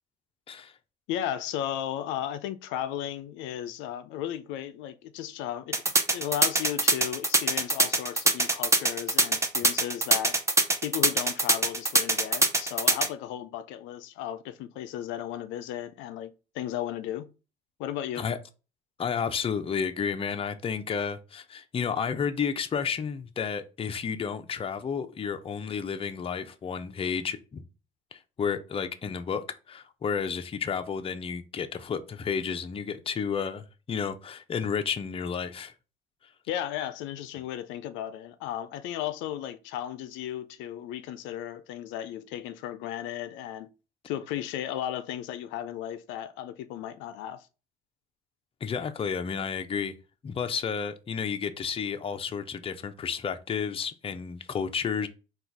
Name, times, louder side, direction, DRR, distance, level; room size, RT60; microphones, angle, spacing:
voice 1, 1.1-5.8 6.1-10.4 10.8-17.3 17.8-18.2 36.5-43.7 44.1-47.5, left 11 dB, 80° left, 0.4 m, -35 dB
sound 1, 5.7-13.1, right 2 dB, 15° right, 0.7 m, -23 dB
voice 2, 19.0-27.6 28.1-29.4 29.7-35.7 48.6-49.9 50.2-55.1, left 6 dB, 30° left, 0.5 m, -31 dB
3.8 x 2.4 x 4.5 m
cardioid pair, 95°, 19 cm